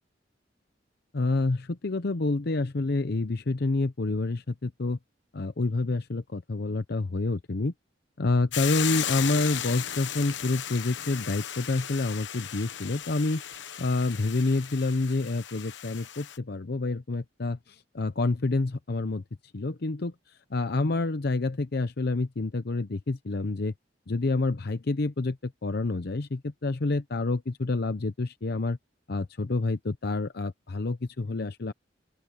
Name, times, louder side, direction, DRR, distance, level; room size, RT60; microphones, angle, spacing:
voice 1, 1.1-5.0 5.3-7.7 8.2-13.4 13.8-19.2 19.5-20.1 20.5-23.7 24.1-28.8 29.1-31.7, left 3 dB, 60° left, 0.7 m, -28 dB
Hiss / Boiling, 8.5-16.4, left 10 dB, 80° left, 1.0 m, -35 dB
open air
head